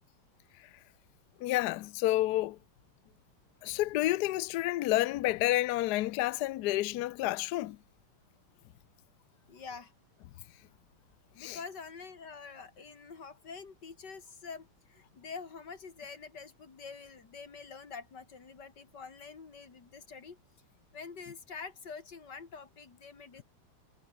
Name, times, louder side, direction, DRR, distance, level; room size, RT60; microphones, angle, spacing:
voice 1, 1.4-2.6 3.6-7.8 11.4-11.6, left 16 dB, 80° left, 0.9 m, -29 dB
voice 2, 9.5-9.9 11.3-20.4 20.9-23.4, left 5 dB, 50° left, 3.2 m, -46 dB
omnidirectional pair, 2.4 m